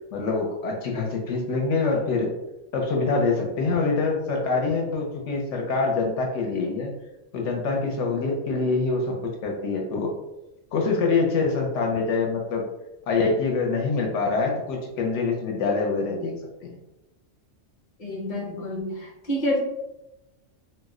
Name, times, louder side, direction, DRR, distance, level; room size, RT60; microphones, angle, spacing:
voice 1, 0.1-2.3 2.7-6.9 7.3-10.1 10.7-12.7 13.1-16.8, left 4 dB, 70° left, 0 dB, 0.9 m, -25 dB
voice 2, 18.0-19.6, left 1 dB, 35° left, -2 dB, 0.7 m, -28 dB
2.5 x 2.0 x 3.5 m, 0.91 s
omnidirectional pair, 1.3 m